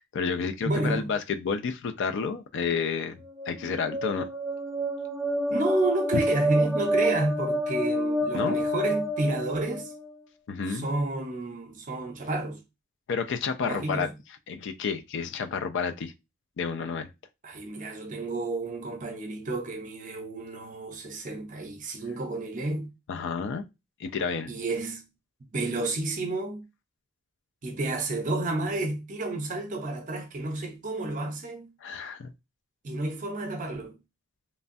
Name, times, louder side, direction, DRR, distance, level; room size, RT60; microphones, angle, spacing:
voice 1, 0.0-3.2 3.5-4.3 8.3-8.6 10.5-10.9 13.1-14.1 14.5-16.1 16.6-17.1 23.1-23.6 24.0-24.5 31.8-32.3, left 5 dB, 60° left, 0.4 m, -30 dB
voice 2, 0.6-1.1 5.5-9.9 10.7-12.6 13.6-14.1 17.4-22.9 24.5-25.0 25.5-26.6 27.6-31.7 32.8-34.0, right 2 dB, 40° right, 0.6 m, -30 dB
sound 1, 3.3-10.1, right 1 dB, ahead, 0.5 m, -28 dB
3.1 x 2.2 x 2.5 m
head